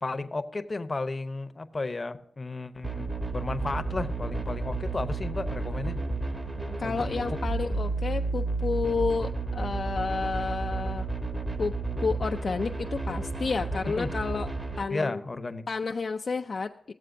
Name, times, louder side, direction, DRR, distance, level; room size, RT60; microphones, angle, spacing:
voice 1, 0.0-6.0 6.8-7.4 13.9-14.1 14.9-15.6, left 3 dB, 35° left, 10 dB, 0.7 m, -33 dB
sound 1, 2.8-14.8, right 3 dB, 30° right, 1.2 m, -32 dB
voice 2, 6.8-11.1 11.6-11.7 12.0-14.5 14.8-15.2 15.7-16.9, left 4 dB, 60° left, 5 dB, 0.3 m, -30 dB
15.5 x 7.4 x 2.6 m, 0.72 s
cardioid pair, 70°, 0 cm